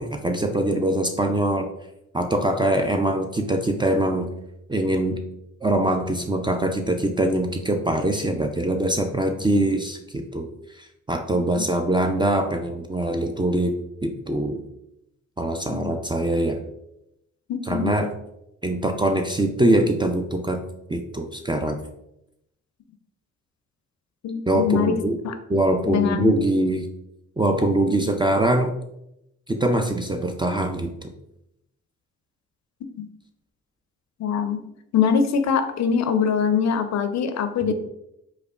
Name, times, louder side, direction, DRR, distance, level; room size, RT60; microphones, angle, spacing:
voice 1, 0.0-1.7 2.1-4.3 4.7-5.2 5.6-10.5 10.8-13.7 14.0-14.6 15.4-16.6 17.7-18.1 18.6-20.6 20.9-21.8 24.5-25.2 25.5-26.9 27.4-28.7 29.5-30.9, right 1 dB, 15° right, 4 dB, 0.4 m, -23 dB
voice 2, 17.5-18.0 24.2-25.3 25.9-26.3 32.9-33.1 34.2-34.6 34.9-37.7, left 6 dB, 60° left, 9 dB, 0.5 m, -23 dB
4.9 x 2.2 x 2.4 m, 0.82 s
supercardioid pair, 50°, 31 cm